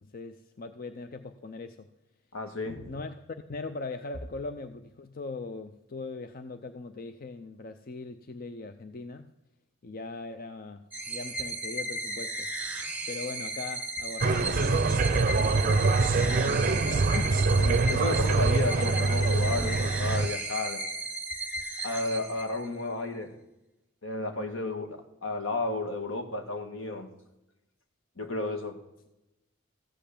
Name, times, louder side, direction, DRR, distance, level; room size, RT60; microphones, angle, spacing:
voice 1, 0.0-1.9 2.9-3.1 3.5-9.3 9.8-12.5 13.1-15.8 16.1-17.6, left 3 dB, 45° left, 8 dB, 0.5 m, -40 dB
voice 2, 2.3-2.9 17.6-20.9 21.8-23.4 24.0-27.1 28.2-28.8, left 2 dB, 75° left, 6 dB, 1.6 m, -33 dB
sound 1, 10.9-22.8, right 1 dB, 5° right, 1.4 m, -35 dB
sound 2, 14.2-20.3, right 3 dB, 45° right, 0.5 m, -24 dB
15.0 x 5.7 x 8.4 m, 0.93 s
head